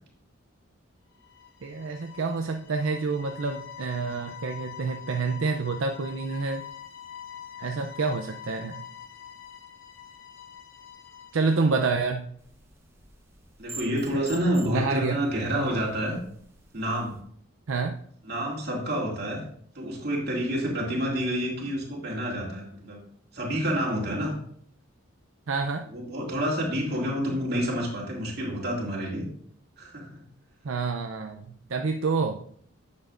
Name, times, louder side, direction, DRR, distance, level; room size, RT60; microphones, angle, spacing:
sound 1, 1.1-11.9, left 9 dB, 70° left, 1.3 m, -45 dB
voice 1, 1.6-6.6 7.6-8.8 11.3-12.3 14.7-15.2 17.7-18.0 25.5-25.9 30.6-32.4, right 4 dB, 75° right, 4 dB, 0.5 m, -28 dB
sound 2, 12.4-17.2, right 2 dB, 10° right, 1.0 m, -47 dB
voice 2, 13.6-16.1 16.7-17.2 18.2-19.4 19.7-23.0 23.3-24.3 25.9-29.2 29.8-30.2, equal, 50° right, -3 dB, 2.6 m, -28 dB
10.5 x 7.4 x 2.5 m, 0.62 s
head